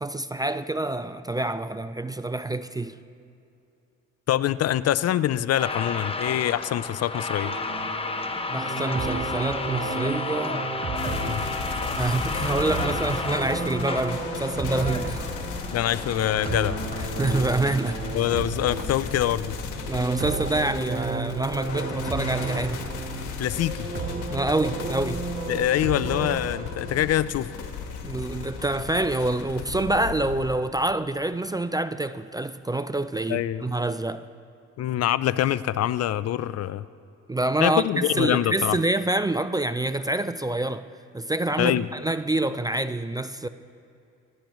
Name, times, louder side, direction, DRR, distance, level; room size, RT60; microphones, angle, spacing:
voice 1, 0.0-3.0 8.5-10.6 12.0-15.3 17.2-18.0 19.9-22.8 24.3-25.3 28.0-34.3 37.3-40.9 41.1-43.5, right 2 dB, 15° right, 0.3 m, -27 dB
voice 2, 4.3-7.5 11.2-11.4 15.7-16.8 18.1-19.5 23.4-23.9 25.5-27.5 33.3-33.6 34.8-36.8 37.6-38.8 41.6-41.9, left 12 dB, 55° left, 0.4 m, -25 dB
sound 1, 5.6-18.2, left 3 dB, 20° left, 0.8 m, -33 dB
sound 2, 7.4-27.1, right 3 dB, 35° right, 1.5 m, -33 dB
sound 3, 11.0-30.5, left 5 dB, 85° left, 1.4 m, -36 dB
23.5 x 13.0 x 3.1 m
cardioid pair, 90°, 30 cm